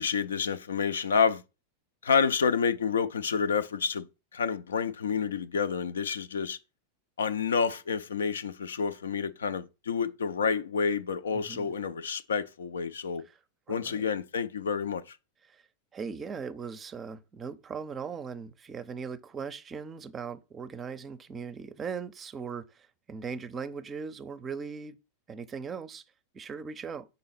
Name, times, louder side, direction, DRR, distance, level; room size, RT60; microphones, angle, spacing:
voice 1, 0.0-1.4 2.0-4.1 4.3-6.6 7.2-13.2 13.7-15.2, left 6 dB, 65° left, 0.4 m, -29 dB
voice 2, 11.3-11.7 13.7-14.1 15.4-15.6 15.9-25.0 25.3-26.0 26.3-27.1, right 6 dB, 20° right, 0.6 m, -39 dB
5.4 x 3.9 x 5.7 m
figure-of-eight pair, 90°, 0 cm